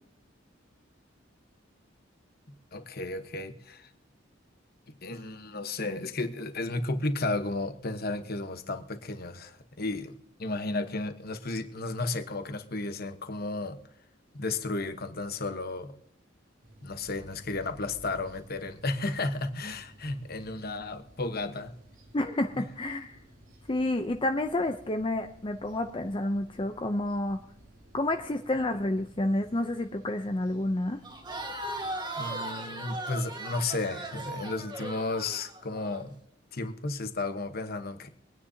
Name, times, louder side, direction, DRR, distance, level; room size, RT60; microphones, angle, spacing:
voice 1, 2.7-3.9 5.0-13.8 14.3-15.9 16.8-21.7 22.6-22.7 32.2-36.2 36.5-38.1, left 2 dB, 50° left, 1.2 m, -33 dB
sound 1, 16.6-32.0, right 1 dB, 90° right, 2.9 m, -55 dB
voice 2, 22.1-23.1 23.7-27.4 27.9-31.0, left 1 dB, 25° left, 0.6 m, -29 dB
Crowd, 31.0-36.0, right 2 dB, 25° right, 1.6 m, -38 dB
24.0 x 9.8 x 2.8 m
head